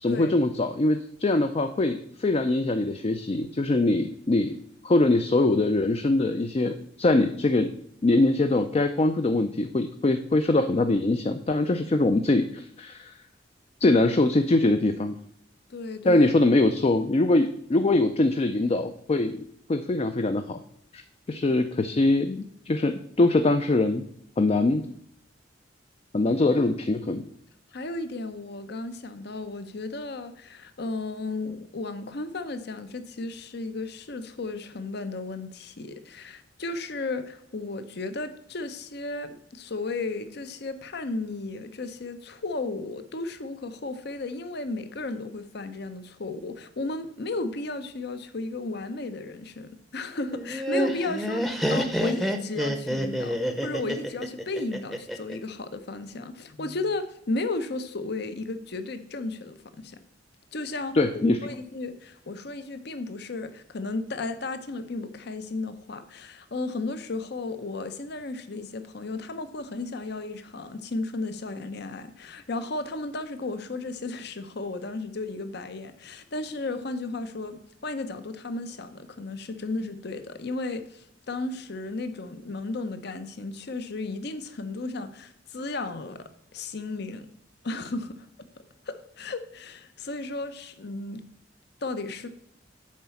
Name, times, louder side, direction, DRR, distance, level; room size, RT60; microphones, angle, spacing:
voice 1, 0.0-4.6 4.8-7.7 8.0-13.1 13.8-15.1 16.0-19.4 19.7-20.6 20.9-21.0 21.3-24.0 24.4-24.9 26.1-27.2 60.9-61.4, left 2 dB, 35° left, 8 dB, 0.4 m, -23 dB
voice 2, 15.7-16.3 21.4-21.5 27.7-60.0 60.5-61.0 61.4-86.2 86.5-87.3 87.6-88.3 88.9-91.2 91.8-92.3, left 3 dB, 60° left, 10 dB, 0.7 m, -34 dB
Laughter, 50.3-55.4, equal, ahead, 0.7 m, -28 dB
7.4 x 4.7 x 7.0 m, 0.71 s
head